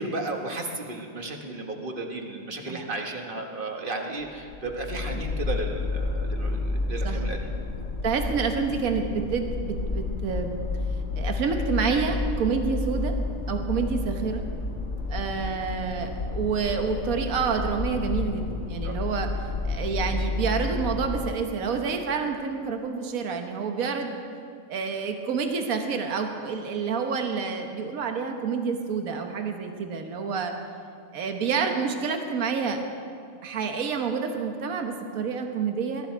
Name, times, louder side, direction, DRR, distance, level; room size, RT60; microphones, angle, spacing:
voice 1, 0.0-7.4 18.8-19.0, right 2 dB, 35° right, 2 dB, 1.6 m, -34 dB
sound 1, 4.2-21.5, left 3 dB, 55° left, 1.5 m, -30 dB
voice 2, 8.0-10.5 11.2-13.1 13.5-14.4 15.1-19.3 19.6-24.2 24.7-30.5 31.1-32.8 33.4-36.1, right 5 dB, 75° right, 4 dB, 1.6 m, -28 dB
22.0 x 13.5 x 4.6 m, 2.3 s
omnidirectional pair, 1.5 m